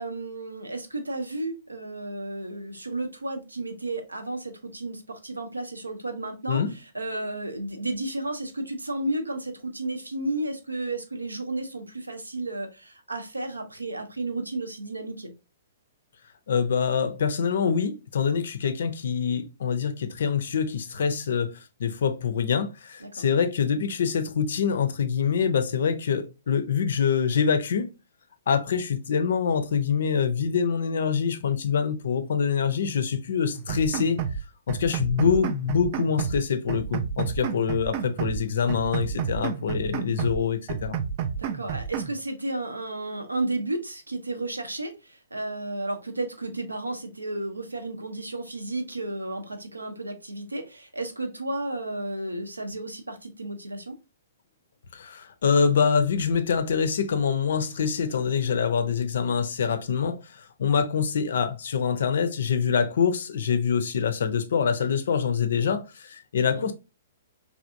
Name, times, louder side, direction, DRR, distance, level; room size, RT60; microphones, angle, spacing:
voice 1, 0.0-6.6 6.9-15.3 23.0-23.2 35.2-35.4 41.4-54.0 66.5-66.7, right 2 dB, 80° right, 0.6 m, -33 dB
voice 2, 16.5-27.9 28.5-34.2 34.7-41.0 54.9-66.7, left 6 dB, 55° left, 0.5 m, -25 dB
sound 1, 33.5-34.4 34.7-36.4 36.7-38.4 38.7-40.4 40.7-42.2, right 8 dB, 35° right, 0.3 m, -31 dB
3.3 x 2.4 x 2.5 m
figure-of-eight pair, 115°, 0 cm